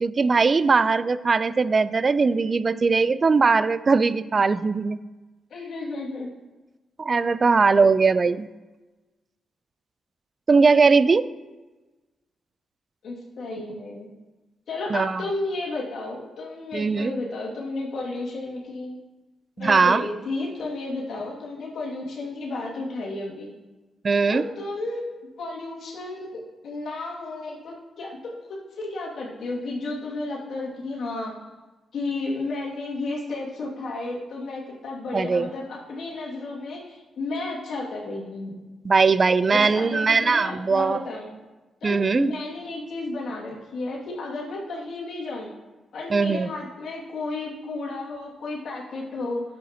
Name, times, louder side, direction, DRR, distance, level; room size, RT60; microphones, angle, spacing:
voice 1, 0.0-5.0 7.0-8.5 10.5-11.3 14.9-15.2 16.7-17.1 19.6-20.1 24.0-24.4 35.1-35.5 38.8-41.0 41.8-42.3 46.1-46.5, right 4 dB, 45° right, 16 dB, 0.4 m, -20 dB
voice 2, 5.5-6.3 13.0-14.1 14.7-19.0 19.6-23.6 24.3-25.1 25.4-31.3 31.9-38.6 39.5-41.3 41.8-45.5 45.9-49.4, left 2 dB, 70° left, -3 dB, 2.2 m, -32 dB
10.5 x 7.5 x 2.9 m, 1.2 s
supercardioid pair, 50°, 0 cm